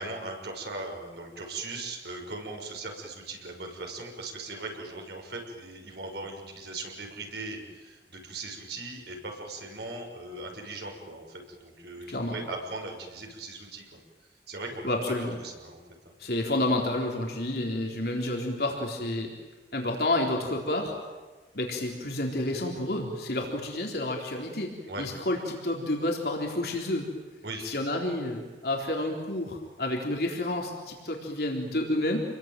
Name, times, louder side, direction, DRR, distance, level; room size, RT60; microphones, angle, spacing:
voice 1, 0.0-14.0 14.5-15.8 24.9-25.1 27.4-27.7, right 2 dB, 70° right, 2 dB, 6.3 m, -39 dB
voice 2, 14.8-15.4 16.2-19.3 19.7-20.9 21.5-24.7 25.0-27.1 27.6-32.2, left 1 dB, 60° left, 1 dB, 4.0 m, -29 dB
28.5 x 22.0 x 9.3 m, 1.3 s
head